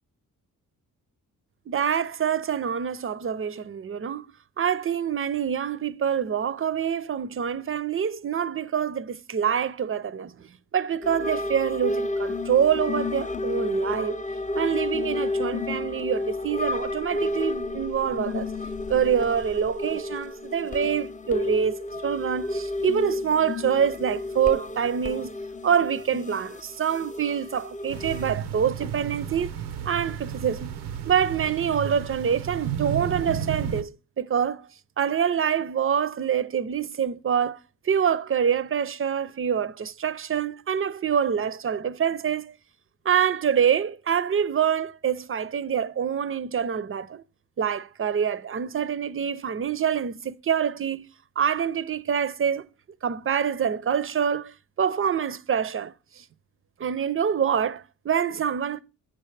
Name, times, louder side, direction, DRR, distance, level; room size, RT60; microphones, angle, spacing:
voice 1, 1.7-4.2 4.6-14.2 14.5-18.5 18.9-25.3 25.6-29.5 29.9-30.7 31.1-34.6 35.0-37.6 37.8-42.5 43.0-47.2 47.6-51.1 51.4-52.7 53.0-56.2 56.8-58.8, right 8 dB, 35° right, 0.6 m, -26 dB
sound 1, 11.0-28.3, left 2 dB, 20° left, 0.5 m, -31 dB
sound 2, 27.9-33.8, right 8 dB, 90° right, 0.7 m, -33 dB
8.6 x 5.8 x 3.3 m
supercardioid pair, 50°, 38 cm